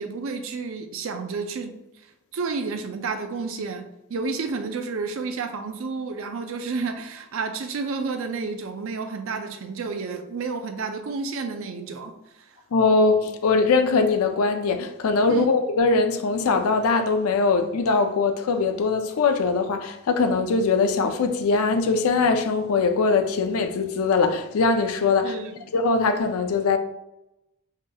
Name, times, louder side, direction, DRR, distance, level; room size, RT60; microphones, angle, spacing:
voice 1, 0.0-1.8 2.3-12.1 12.4-12.5 15.3-15.5 25.2-25.5, right 4 dB, 65° right, 0.4 m, -30 dB
voice 2, 12.7-25.4 25.7-26.8, left 4 dB, 80° left, 0.4 m, -21 dB
4.8 x 2.7 x 2.3 m
head